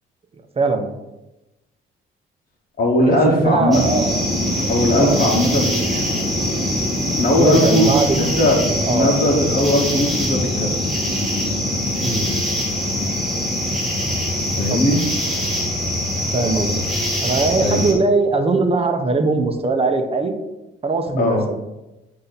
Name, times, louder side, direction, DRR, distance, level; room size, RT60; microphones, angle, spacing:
voice 1, 0.6-0.9 3.1-4.1 5.0-5.4 7.4-8.4 8.9-9.1 12.0-12.3 14.7-14.9 16.3-16.8 17.2-20.3 20.8-21.6, right 3 dB, 30° right, 5 dB, 0.8 m, -20 dB
voice 2, 2.8-3.8 4.7-6.2 7.2-7.9 8.2-8.6 8.9-10.7 14.6-15.0 17.6-17.9 21.2-21.5, left 1 dB, 45° left, -2 dB, 1.2 m, -19 dB
sound 1, 3.7-17.9, left 1 dB, ahead, 1.6 m, -22 dB
8.3 x 2.8 x 4.0 m, 0.98 s
cardioid pair, 90°, 20 cm